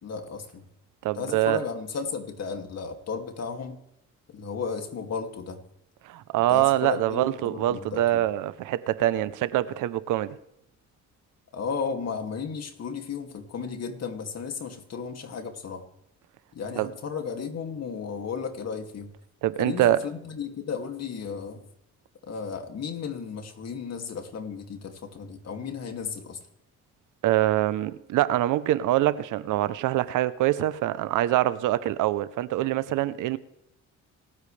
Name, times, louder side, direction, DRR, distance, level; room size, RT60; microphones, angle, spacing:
voice 1, 0.0-0.6 1.1-3.8 4.3-5.6 6.5-8.2 11.5-15.9 16.5-19.1 19.6-21.7 22.3-26.4, left 5 dB, 55° left, 2.5 m, -34 dB
voice 2, 1.0-1.6 6.1-10.4 16.8-16.9 19.4-20.0 27.2-33.4, right 14 dB, 90° right, 0.8 m, -24 dB
26.5 x 13.5 x 3.4 m
cardioid pair, 90°, 30 cm